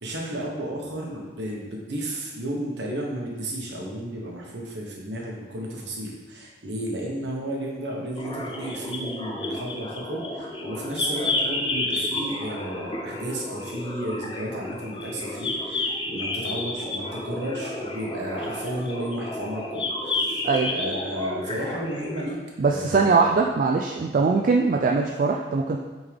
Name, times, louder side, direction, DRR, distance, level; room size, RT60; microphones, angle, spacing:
voice 1, 0.0-20.4 20.7-23.4, right 1 dB, 65° right, -2 dB, 1.3 m, -33 dB
sound 1, 8.2-22.3, left 2 dB, 25° left, 0.6 m, -31 dB
voice 2, 22.6-25.8, right 4 dB, 45° right, 1 dB, 0.4 m, -21 dB
8.0 x 3.7 x 3.5 m, 1.3 s
head